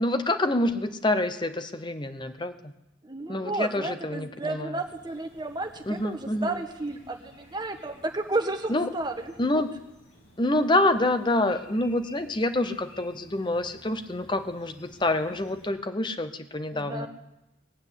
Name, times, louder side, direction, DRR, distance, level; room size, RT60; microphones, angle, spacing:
voice 1, 0.0-2.7 3.3-4.8 5.9-6.6 8.7-8.9 9.4-9.7 10.4-17.1, left 1 dB, 25° left, 10 dB, 0.8 m, -27 dB
voice 2, 3.0-9.1 16.7-17.1, right 2 dB, 20° right, 5 dB, 1.2 m, -32 dB
sound 1, 4.8-15.7, equal, 80° left, 4.3 m, -55 dB
20.0 x 7.8 x 8.2 m, 0.91 s
head